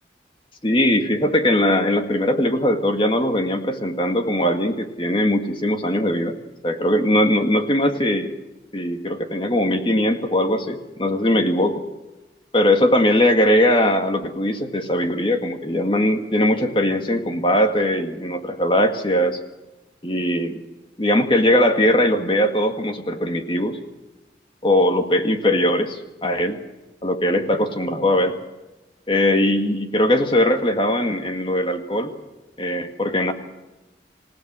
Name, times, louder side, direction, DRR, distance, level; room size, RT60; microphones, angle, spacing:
voice 1, 0.6-6.4 6.6-8.4 8.7-11.8 12.5-19.4 20.0-20.6 21.0-23.8 24.6-26.6 27.0-28.4 29.1-32.1 32.6-33.3, left 1 dB, 30° left, 6 dB, 1.9 m, -20 dB
27.5 x 17.0 x 6.3 m, 1.1 s
head